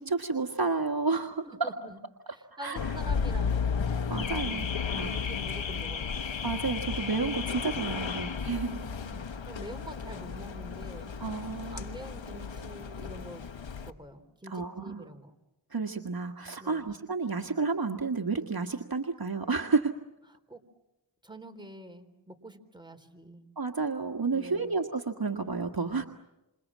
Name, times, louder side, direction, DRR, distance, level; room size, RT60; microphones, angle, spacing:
voice 1, 0.0-1.7 2.6-2.9 4.1-4.7 4.9-5.2 6.4-8.8 11.2-11.9 14.5-15.0 15.7-19.9 23.6-26.1, right 4 dB, 50° right, 4 dB, 1.7 m, -31 dB
voice 2, 1.4-2.0 2.3-3.9 4.4-4.8 5.1-6.4 7.5-7.7 8.7-11.1 11.7-13.5 13.8-15.3 16.6-16.9 20.5-20.6 21.2-23.5 24.3-24.7 25.9-26.1, right 1 dB, 10° right, 5 dB, 3.7 m, -46 dB
Car / Alarm, 2.8-13.9, left 6 dB, 75° left, 1.3 m, -33 dB
28.5 x 27.0 x 7.4 m, 0.96 s
cardioid pair, 40°, 45 cm